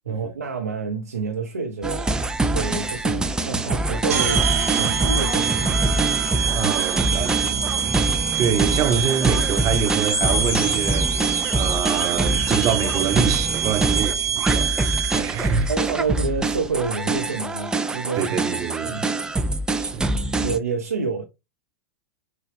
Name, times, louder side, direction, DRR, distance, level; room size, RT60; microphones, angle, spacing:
voice 1, 0.1-2.1 2.5-4.5 4.8-5.8 15.4-18.3 18.9-19.0 20.4-21.3, right 4 dB, 85° right, 0.7 m, -28 dB
sound 1, 1.8-20.6, right 2 dB, 10° right, 0.5 m, -24 dB
sound 2, 4.1-15.5, right 9 dB, 65° right, 1.1 m, -25 dB
voice 2, 6.5-7.9 8.4-11.3 11.5-15.7 18.2-19.1 19.8-20.1, right 8 dB, 35° right, 0.8 m, -26 dB
sound 3, 10.1-13.1, left 3 dB, 25° left, 2.3 m, -31 dB
6.6 x 2.3 x 3.4 m
figure-of-eight pair, 95°, 8 cm